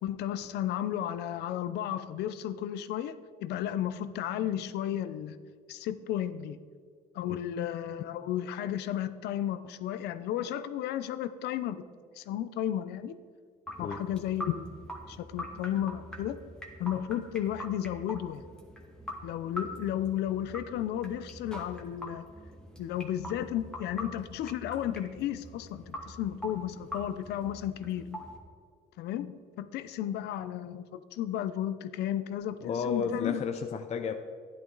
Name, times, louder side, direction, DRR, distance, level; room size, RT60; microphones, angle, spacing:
voice 1, 0.0-5.4 5.7-6.6 7.1-11.8 12.2-13.2 13.8-14.7 15.1-16.4 16.8-18.4 19.2-22.2 22.8-28.2 29.0-33.4, left 11 dB, 80° left, 13 dB, 0.6 m, -33 dB
sound 1, 13.7-28.4, equal, 5° left, 1.6 m, -44 dB
voice 2, 32.6-34.1, left 5 dB, 40° left, 6 dB, 0.6 m, -32 dB
12.5 x 10.5 x 4.0 m, 2.1 s
cardioid pair, 110°, 17 cm